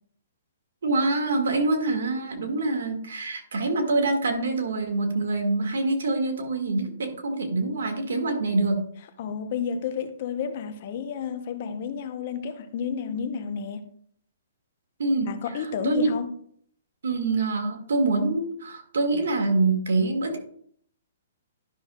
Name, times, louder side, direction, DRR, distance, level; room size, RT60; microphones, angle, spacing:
voice 1, 0.8-8.8 15.0-15.3 15.8-16.1 17.0-20.4, right 3 dB, 75° right, 1.7 m, -25 dB
voice 2, 9.2-13.9 15.2-16.3, left 7 dB, 45° left, 0.8 m, -31 dB
11.5 x 6.2 x 2.3 m
hypercardioid pair, 160°, 0 cm